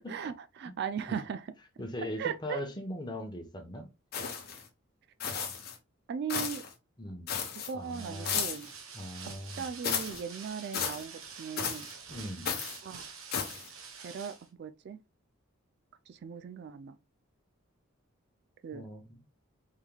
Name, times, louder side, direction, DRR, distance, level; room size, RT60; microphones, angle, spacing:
voice 1, 0.0-1.4 2.2-2.6 6.1-6.6 7.7-8.7 9.2-9.3 9.6-11.9 12.8-13.1 14.0-15.0 16.1-17.0 18.6-18.8, right 7 dB, 50° right, 0.3 m, -38 dB
voice 2, 1.8-3.9 7.0-7.3 7.7-8.4 8.9-9.7 12.1-12.5 18.7-19.2, equal, 20° left, 0.9 m, -40 dB
sound 1, 4.1-4.6 5.2-5.8 6.3-6.7 7.3-7.7 8.2-8.7 9.8-10.2 10.7-11.0 11.6-11.9 12.4-12.8 13.3-13.7, left 7 dB, 45° left, 0.9 m, -34 dB
sound 2, 7.8-14.5, right 5 dB, 75° right, 1.0 m, -47 dB
4.6 x 3.6 x 2.2 m
head